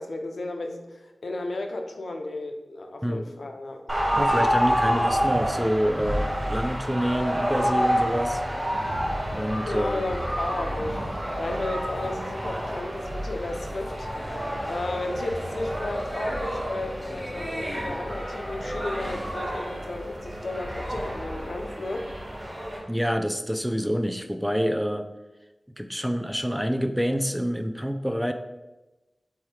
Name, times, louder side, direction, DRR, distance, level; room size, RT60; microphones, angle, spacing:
voice 1, 0.0-4.0 9.7-22.1, left 2 dB, 85° left, 4 dB, 0.7 m, -33 dB
sound 1, 3.9-22.8, equal, 20° right, 2.1 m, -29 dB
voice 2, 4.1-8.4 9.3-10.1 22.9-25.1 25.8-28.3, equal, ahead, 7 dB, 0.5 m, -27 dB
4.9 x 4.2 x 4.8 m, 1.1 s
wide cardioid pair, 55°, 0 cm